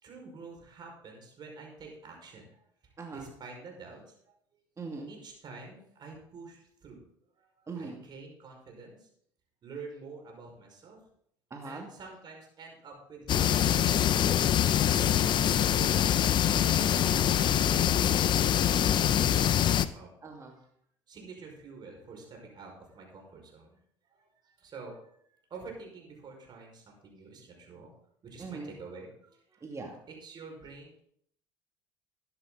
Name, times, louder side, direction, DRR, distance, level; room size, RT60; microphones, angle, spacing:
voice 1, 0.0-2.6 3.1-4.3 5.1-7.0 7.4-9.1 9.6-11.0 11.6-14.9 15.7-17.1 17.5-19.2 19.9-20.2 21.1-23.8 24.1-27.9 28.2-29.1 29.5-29.6 30.1-31.0, right 4 dB, 45° right, 1 dB, 5.3 m, -48 dB
voice 2, 3.0-3.3 4.8-5.1 7.7-8.0 11.5-11.9 20.2-20.6 28.4-28.9 29.6-30.0, right 3 dB, 30° right, 2 dB, 2.5 m, -41 dB
sound 1, 13.3-19.9, left 10 dB, 50° left, 0.7 m, -24 dB
13.0 x 10.5 x 4.0 m, 0.68 s
hypercardioid pair, 70°, 10 cm